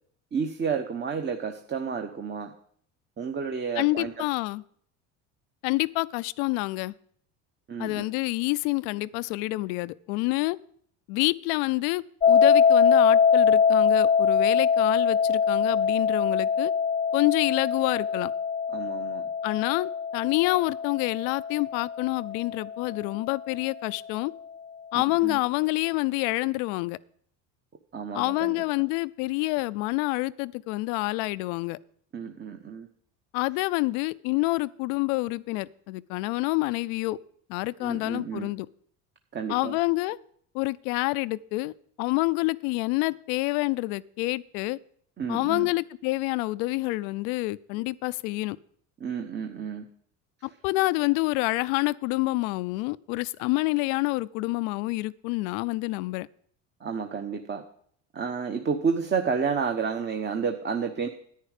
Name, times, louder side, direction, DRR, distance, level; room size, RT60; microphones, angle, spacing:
voice 1, 0.3-2.5 3.2-4.1 7.7-8.1 18.7-19.2 24.9-25.4 27.9-28.6 32.1-32.9 37.8-38.5 39.3-39.8 45.2-45.7 49.0-49.9 56.8-57.6 58.1-61.1, right 6 dB, 30° right, 5 dB, 1.0 m, -30 dB
voice 2, 3.8-4.6 5.6-6.9 7.8-10.6 11.1-16.7 17.1-18.3 19.4-24.3 24.9-27.0 28.1-31.8 33.3-37.2 37.5-38.7 39.5-40.2 40.5-44.8 45.3-48.6 50.4-56.3, left 22 dB, 80° left, 19 dB, 0.5 m, -27 dB
sound 1, 12.2-23.1, left 6 dB, 20° left, 0.3 m, -23 dB
10.0 x 9.6 x 4.9 m, 0.62 s
supercardioid pair, 90°, 37 cm